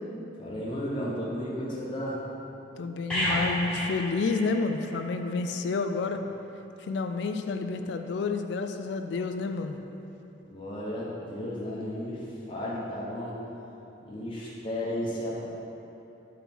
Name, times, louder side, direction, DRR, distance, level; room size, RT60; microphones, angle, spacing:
voice 1, 0.4-2.2 10.5-13.4 14.1-15.4, equal, 25° left, -7 dB, 0.8 m, -34 dB
voice 2, 2.8-6.2 6.9-9.8, left 4 dB, 65° left, 7 dB, 0.3 m, -29 dB
sound 1, 3.1-5.0 5.3-5.5, equal, 5° left, 1.4 m, -31 dB
5.5 x 4.3 x 4.2 m, 3.0 s
head